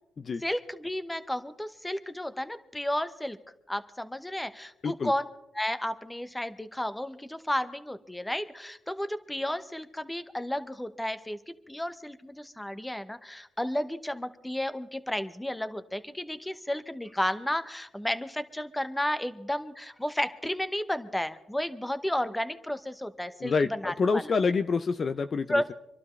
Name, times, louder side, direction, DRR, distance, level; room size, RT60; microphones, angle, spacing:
voice 1, 0.4-3.4 3.7-5.3 5.5-11.4 11.7-24.3 25.5-25.7, left 1 dB, 5° left, 11 dB, 1.0 m, -32 dB
voice 2, 23.4-25.6, left 4 dB, 40° left, 9 dB, 0.6 m, -27 dB
27.0 x 12.0 x 3.2 m, 0.83 s
cardioid pair, 90°, 0 cm